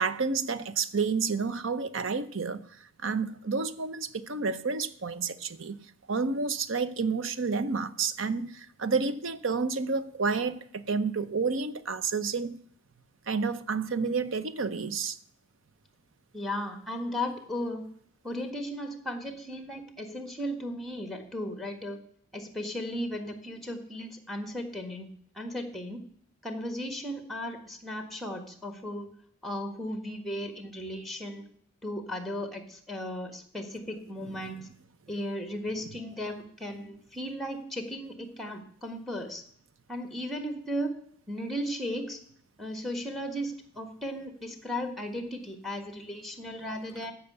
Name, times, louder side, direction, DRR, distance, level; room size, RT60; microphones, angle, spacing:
voice 1, 0.0-12.6 13.3-15.2 34.2-34.5, right 4 dB, 70° right, 0.7 m, -30 dB
voice 2, 16.3-17.9 18.2-22.0 22.3-25.1 25.3-26.0 26.4-29.1 29.4-31.4 31.8-34.7 35.1-39.4 39.9-40.9 41.3-42.2 42.6-47.1, equal, ahead, 1.5 m, -36 dB
15.0 x 5.8 x 6.8 m
head